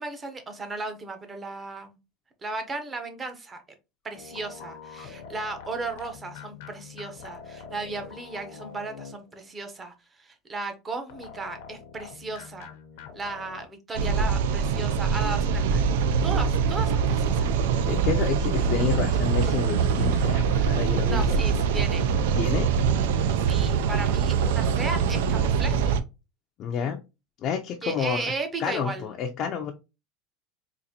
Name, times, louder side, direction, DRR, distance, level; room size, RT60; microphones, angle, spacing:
voice 1, 0.0-2.0 2.4-3.6 4.0-12.7 13.1-15.8 16.2-17.5 21.1-22.1 23.4-26.0 27.8-29.1, right 3 dB, 20° right, 6 dB, 0.7 m, -35 dB
sound 1, 4.1-9.5 11.1-13.7, left 6 dB, 80° left, 0.7 m, -44 dB
sound 2, 13.9-26.0, right 6 dB, 85° right, 0.4 m, -23 dB
voice 2, 17.9-21.2 22.4-22.7 26.6-27.0 27.4-28.2 28.6-29.7, left 7 dB, 45° left, 2 dB, 0.4 m, -29 dB
4.0 x 2.5 x 2.8 m, 0.27 s
supercardioid pair, 140°, 0 cm